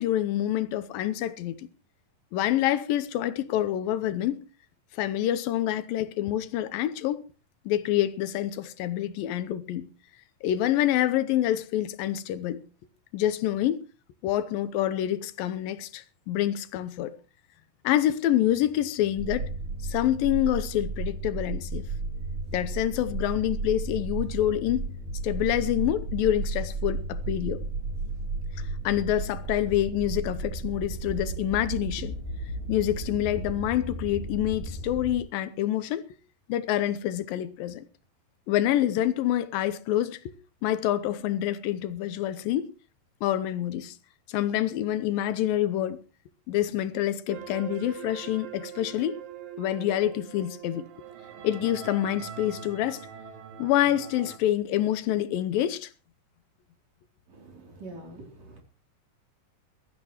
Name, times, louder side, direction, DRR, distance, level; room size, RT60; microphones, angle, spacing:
voice 1, 0.0-1.7 2.3-4.4 4.9-7.2 7.7-9.9 10.4-12.6 13.1-13.8 14.2-17.1 17.8-19.5 19.8-21.9 22.5-24.9 25.2-27.6 28.8-32.1 32.7-36.0 36.5-37.9 38.5-40.3 40.6-42.7 43.2-43.9 44.3-46.0 46.5-49.2 49.6-50.9 51.4-53.1 53.6-55.9, left 12 dB, 85° left, 2.6 m, -27 dB
sound 1, 19.2-35.2, right 3 dB, 15° right, 4.2 m, -34 dB
sound 2, 47.3-54.4, right 9 dB, 85° right, 3.1 m, -42 dB
voice 2, 57.3-58.6, right 2 dB, 50° right, 4.3 m, -45 dB
22.0 x 13.5 x 3.0 m
omnidirectional pair, 4.0 m